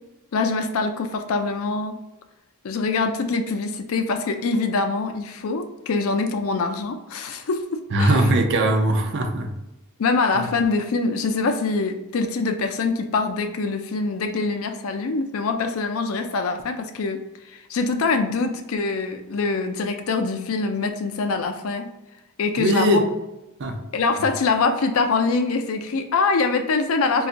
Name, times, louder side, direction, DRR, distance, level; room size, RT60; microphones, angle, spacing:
voice 1, 0.3-2.0 2.6-8.2 10.0-17.2 17.5-21.9 22.4-23.0 23.9-27.3, left 4 dB, 65° left, 6 dB, 0.4 m, -24 dB
voice 2, 7.9-9.5 10.4-10.5 22.6-23.0 23.6-23.8, right 1 dB, 55° right, 4 dB, 0.5 m, -20 dB
3.9 x 2.3 x 2.5 m, 0.99 s
head